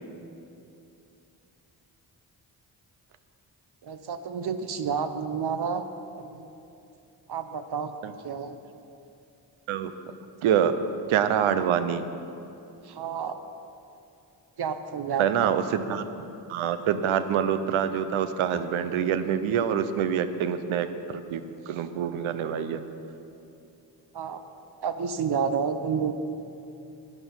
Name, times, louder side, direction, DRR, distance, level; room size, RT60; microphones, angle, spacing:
voice 1, 3.8-5.9 6.1-6.5 7.3-7.9 8.2-8.6 12.8-13.4 14.6-15.5 24.1-24.4 24.8-26.1, right 6 dB, 55° right, 10 dB, 0.9 m, -30 dB
voice 2, 10.4-10.7 11.1-12.0 15.2-16.0 16.5-21.4 21.7-22.8, right 8 dB, 85° right, 11 dB, 0.7 m, -25 dB
11.5 x 9.3 x 5.5 m, 2.7 s
supercardioid pair, 40°, 48 cm